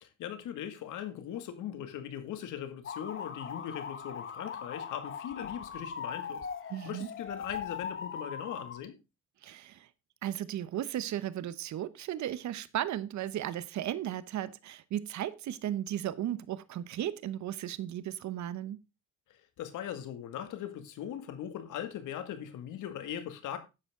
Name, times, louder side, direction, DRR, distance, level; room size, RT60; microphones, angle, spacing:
voice 1, 0.0-6.5 6.8-9.0 19.3-23.6, left 10 dB, 85° left, 2.1 m, -40 dB
sound 1, 2.8-8.8, left 6 dB, 40° left, 1.3 m, -40 dB
voice 2, 6.7-7.1 9.4-9.9 10.2-18.8, right 12 dB, 70° right, 0.9 m, -35 dB
11.5 x 8.2 x 3.7 m
cardioid pair, 90°, 30 cm